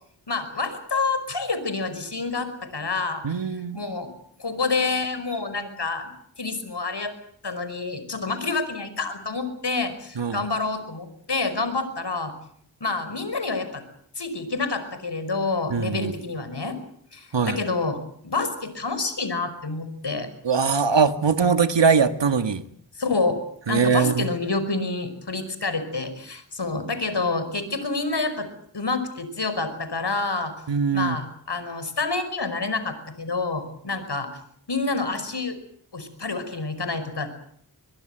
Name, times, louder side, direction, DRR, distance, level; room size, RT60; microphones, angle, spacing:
voice 1, 0.3-3.2 3.7-4.1 4.4-6.1 6.4-7.1 7.4-12.3 12.8-13.8 14.2-16.8 17.1-18.0 18.2-20.3 23.0-23.4 23.7-28.5 28.7-30.5 30.9-34.3 34.7-35.6 35.9-37.3, left 3 dB, 60° left, 11 dB, 5.4 m, -28 dB
voice 2, 3.2-3.8 10.2-10.5 15.7-16.1 17.3-17.6 20.4-22.6 23.7-24.3 30.7-31.2, right 5 dB, 65° right, 10 dB, 1.8 m, -21 dB
23.5 x 22.0 x 8.0 m, 0.67 s
cardioid pair, 45°, 46 cm